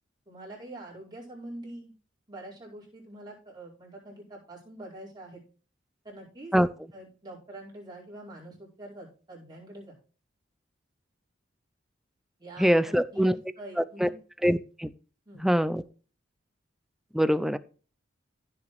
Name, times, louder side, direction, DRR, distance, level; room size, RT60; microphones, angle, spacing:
voice 1, 0.3-1.9 2.3-5.4 6.0-6.5 6.9-10.0 12.4-14.2 15.2-15.5, right 1 dB, 20° right, -5 dB, 4.9 m, -45 dB
voice 2, 12.6-13.3 13.8-14.1 14.4-14.9 15.4-15.8 17.1-17.6, equal, ahead, 15 dB, 0.4 m, -23 dB
15.5 x 6.9 x 3.2 m, 0.38 s
head